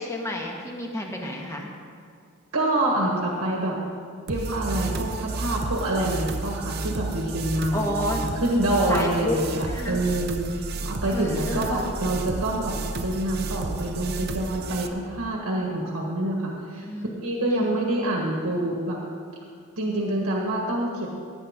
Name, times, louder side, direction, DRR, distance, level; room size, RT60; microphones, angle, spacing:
voice 1, 0.0-1.7 7.7-8.3 8.9-9.4 9.6-10.0 11.1-11.8 16.8-17.7, left 1 dB, 15° left, 0 dB, 1.4 m, -31 dB
voice 2, 2.5-3.8 4.3-16.9 17.2-19.0 19.8-21.1, right 1 dB, 85° right, -1 dB, 1.5 m, -26 dB
sound 1, 4.3-14.9, right 3 dB, 45° right, 0.7 m, -32 dB
17.5 x 9.2 x 3.7 m, 2.2 s
head